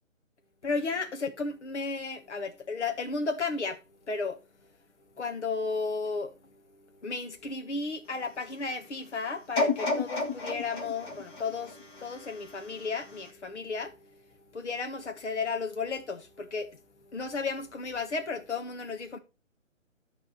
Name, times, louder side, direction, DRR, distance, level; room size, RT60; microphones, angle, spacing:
voice 1, 0.6-3.8 4.1-4.4 5.2-6.3 7.0-14.0 14.5-16.7 17.1-19.2, left 4 dB, 60° left, 1.8 m, -33 dB
sound 1, 9.6-12.6 13.2-13.3, left 3 dB, 20° left, 1.5 m, -31 dB
12.5 x 4.2 x 5.8 m
figure-of-eight pair, 145°, 39 cm